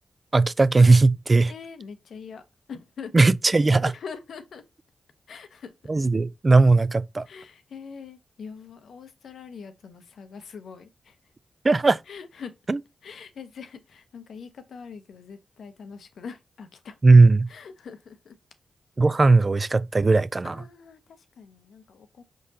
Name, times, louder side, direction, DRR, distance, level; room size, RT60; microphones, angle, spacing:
voice 1, 0.3-1.5 3.1-3.9 5.9-7.2 11.6-12.0 12.7-12.8 17.0-17.5 19.0-20.5, right 3 dB, 40° right, 0.4 m, -18 dB
voice 2, 1.5-2.4 2.7-3.3 3.9-4.6 5.3-5.7 7.3-11.2 12.1-12.5 13.0-17.0 17.5-18.4 20.4-22.2, left 6 dB, 80° left, 0.7 m, -43 dB
5.0 x 3.9 x 2.7 m
cardioid pair, 50°, 0 cm